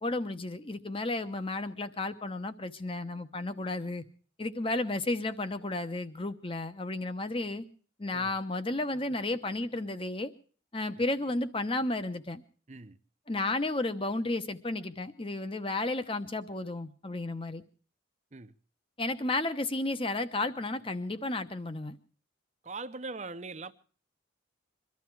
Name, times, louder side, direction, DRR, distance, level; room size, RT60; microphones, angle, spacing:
voice 1, 0.0-4.0 4.4-7.6 8.0-10.3 10.7-12.4 13.3-17.6 19.0-22.0, left 2 dB, 25° left, 1.0 m, -33 dB
voice 2, 22.6-23.7, right 3 dB, 35° right, 0.7 m, -41 dB
23.5 x 13.0 x 4.7 m
head